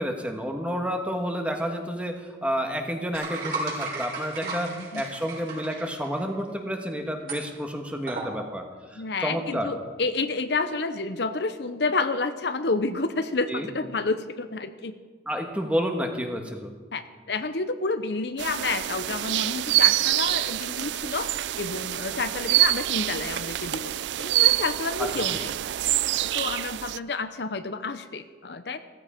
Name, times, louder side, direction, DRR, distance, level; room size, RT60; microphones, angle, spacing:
voice 1, 0.0-8.6 8.9-9.7 13.5-13.7 15.3-16.7 25.0-25.4, equal, 5° right, 4 dB, 1.4 m, -30 dB
sound 1, 3.1-6.3 7.3-7.4 8.1-8.4, right 3 dB, 45° right, 5.2 m, -34 dB
voice 2, 4.4-5.0 8.9-14.9 16.9-21.3 21.6-25.5 26.2-28.8, left 3 dB, 65° left, 10 dB, 0.7 m, -30 dB
sound 2, 18.4-27.0, right 15 dB, 70° right, 0.3 m, -26 dB
16.0 x 14.5 x 5.1 m, 1.5 s
head